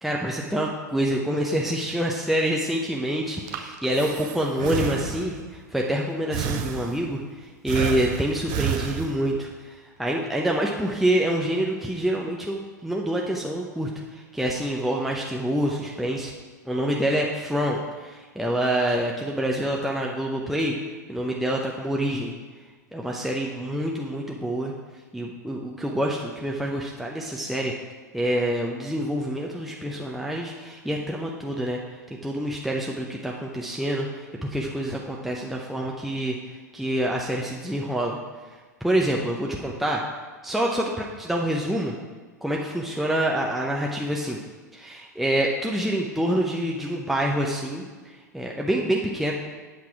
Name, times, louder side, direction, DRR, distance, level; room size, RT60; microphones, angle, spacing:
voice 1, 0.0-7.2 7.6-16.3 16.7-20.8 21.1-22.3 22.9-24.7 25.1-27.7 28.1-31.8 32.1-36.3 36.7-38.2 38.8-40.0 40.4-41.9 42.4-44.4 44.7-49.3, right 1 dB, ahead, -2 dB, 0.7 m, -26 dB
Breathing, 3.2-5.5 6.3-7.2 7.7-9.5, right 8 dB, 45° right, 0.8 m, -31 dB
8.3 x 5.9 x 4.8 m, 1.4 s
figure-of-eight pair, 95°, 10 cm